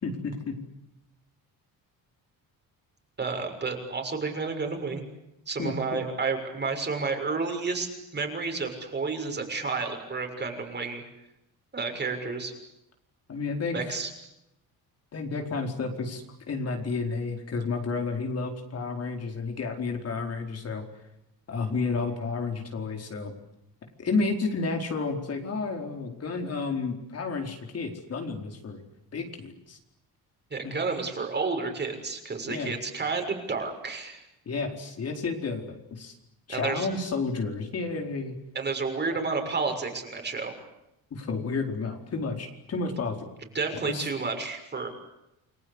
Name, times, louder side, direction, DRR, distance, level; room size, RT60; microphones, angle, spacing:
voice 1, 0.0-0.6 5.6-6.0 13.3-14.0 15.1-20.8 21.5-23.3 24.0-28.8 29.1-29.8 30.6-30.8 32.5-32.7 34.5-36.1 36.5-38.4 41.1-43.2 43.8-44.1, left 4 dB, 40° left, 3 dB, 4.6 m, -31 dB
voice 2, 3.2-5.0 5.5-11.0 11.7-12.5 13.7-14.1 30.5-34.2 36.5-36.9 38.5-40.5 43.5-44.9, right 4 dB, 30° right, 4 dB, 6.5 m, -31 dB
30.0 x 22.5 x 8.3 m, 0.86 s
cardioid pair, 135°, 36 cm